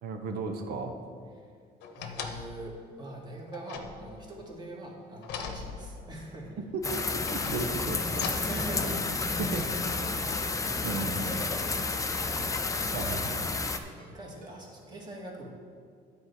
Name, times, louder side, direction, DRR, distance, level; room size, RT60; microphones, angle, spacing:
voice 1, 0.0-0.9 6.7-8.3 9.4-9.7 10.8-11.3 12.9-13.5, right 3 dB, 70° right, 5 dB, 0.9 m, -35 dB
sound 1, 1.8-2.7 3.5-4.5 5.2-6.3 7.0-8.6 9.3-9.4, left 6 dB, 85° left, 0.9 m, -40 dB
voice 2, 2.0-6.6 8.2-9.6 9.9-12.6 13.4-13.6 14.1-15.5, right 1 dB, 25° right, -1 dB, 1.9 m, -43 dB
sound 2, 6.8-13.8, left 3 dB, 20° left, 0.6 m, -31 dB
Ringtone, 8.0-8.1 8.7-9.0 9.3-9.4 9.7-9.8 10.4-10.7 11.0-11.1 11.4-11.6 12.1-12.4 12.7-12.8 13.1-13.3 13.8-14.1 14.4-14.5, right 2 dB, 55° right, 1.5 m, -52 dB
9.5 x 4.4 x 6.9 m, 2.3 s
cardioid pair, 110°, 17 cm